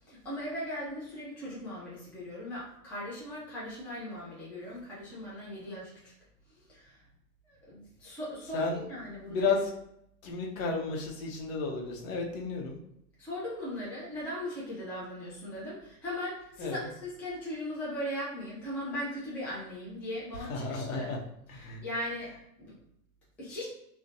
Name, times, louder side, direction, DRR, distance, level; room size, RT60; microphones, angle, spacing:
voice 1, 0.0-6.1 6.5-7.0 7.5-9.5 13.2-21.1 21.5-22.8 23.4-23.7, left 1 dB, 5° left, -8 dB, 0.4 m, -39 dB
voice 2, 9.3-9.6 10.2-12.8 16.6-16.9 20.5-21.2 21.5-21.8, left 4 dB, 55° left, 0 dB, 0.8 m, -32 dB
2.5 x 2.2 x 2.6 m, 0.77 s
hypercardioid pair, 105°, 50 cm